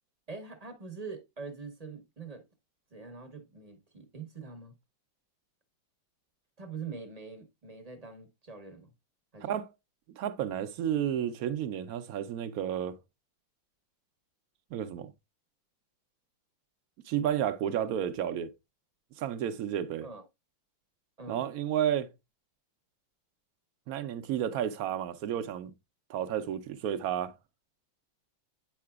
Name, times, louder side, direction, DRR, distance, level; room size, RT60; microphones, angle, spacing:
voice 1, 0.3-2.4 2.9-4.7 6.6-8.9 9.3-9.6 20.0-20.2 21.2-21.4, right 5 dB, 35° right, 0.6 m, -44 dB
voice 2, 10.2-13.0 14.7-15.1 17.1-18.5 19.2-20.1 21.3-22.1 23.9-25.7 26.1-27.3, right 10 dB, 75° right, 0.8 m, -31 dB
8.5 x 5.7 x 2.3 m
omnidirectional pair, 2.1 m